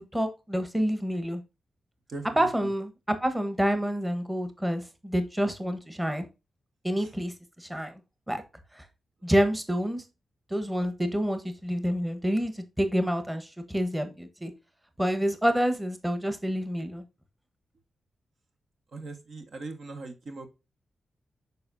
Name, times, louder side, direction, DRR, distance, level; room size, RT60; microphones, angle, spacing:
voice 1, 0.0-1.4 2.2-6.3 6.8-8.0 8.3-8.4 8.7-8.8 9.2-10.0 10.5-14.5 15.0-17.0, equal, 10° right, 8 dB, 1.2 m, -28 dB
voice 2, 2.1-2.7 7.0-7.1 18.9-20.5, right 3 dB, 65° right, 5 dB, 1.4 m, -40 dB
6.9 x 5.4 x 2.6 m, 0.26 s
cardioid pair, 70°, 0 cm